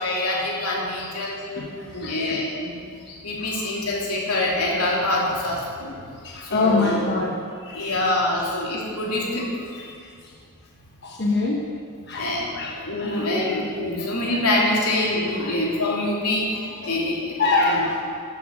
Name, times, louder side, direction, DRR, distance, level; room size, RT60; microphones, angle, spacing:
voice 1, 0.0-1.7 1.9-2.7 3.2-6.0 6.4-7.0 7.6-9.5 9.8-9.9 12.2-12.5 12.8-17.4 17.7-17.9, left 1 dB, 85° left, -3 dB, 2.8 m, -25 dB
voice 2, 1.6-2.4 3.1-3.2 3.6-3.7 6.2-7.3 7.8-7.9 11.0-11.6 12.1-12.3 12.5-13.2 14.0-14.1 15.3-15.5 17.4-18.0, left 3 dB, 50° left, -2 dB, 1.1 m, -25 dB
13.0 x 7.2 x 6.3 m, 2.3 s
head